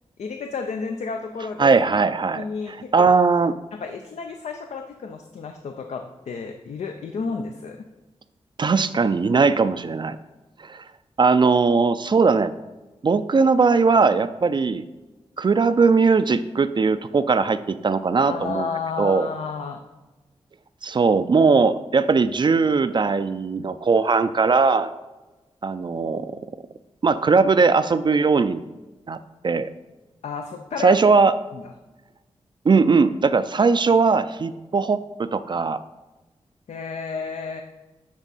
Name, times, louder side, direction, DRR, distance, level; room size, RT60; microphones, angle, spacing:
voice 1, 0.2-1.7 2.4-3.1 3.7-7.8 18.3-19.8 30.2-31.0 31.5-31.6 36.7-37.6, left 5 dB, 75° left, 5 dB, 0.5 m, -31 dB
voice 2, 1.6-3.5 8.6-10.2 10.6-10.8 11.2-12.5 13.0-14.8 15.4-18.7 19.0-19.3 20.8-24.9 25.6-26.4 27.0-28.6 29.1-29.2 29.4-29.7 30.8-31.3 32.7-35.8, right 4 dB, 40° right, 12 dB, 0.4 m, -19 dB
9.7 x 3.6 x 4.1 m, 1.1 s
cardioid pair, 50°, 12 cm